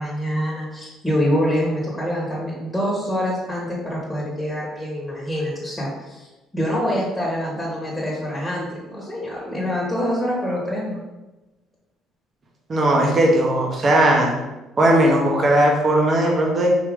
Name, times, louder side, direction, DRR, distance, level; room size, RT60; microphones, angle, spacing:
voice 1, 0.0-6.3 6.5-11.0, equal, ahead, -5 dB, 1.5 m, -25 dB
voice 2, 12.7-14.3 14.8-16.7, right 1 dB, 40° right, -1 dB, 1.2 m, -17 dB
5.0 x 2.9 x 3.6 m, 1.1 s
supercardioid pair, 90°, 0 cm